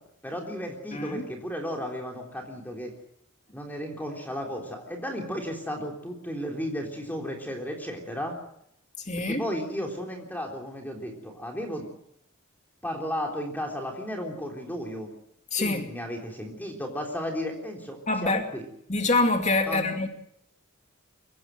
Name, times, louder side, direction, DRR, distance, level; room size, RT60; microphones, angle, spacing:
voice 1, 0.2-2.9 3.5-8.4 9.3-11.9 12.8-15.1 15.6-18.6 19.7-20.1, equal, 10° left, 1 dB, 3.6 m, -34 dB
voice 2, 0.9-1.2 9.0-9.4 15.5-15.9 18.1-18.4 18.9-20.1, left 2 dB, 35° left, 4 dB, 2.6 m, -25 dB
24.0 x 17.5 x 7.8 m, 0.72 s
head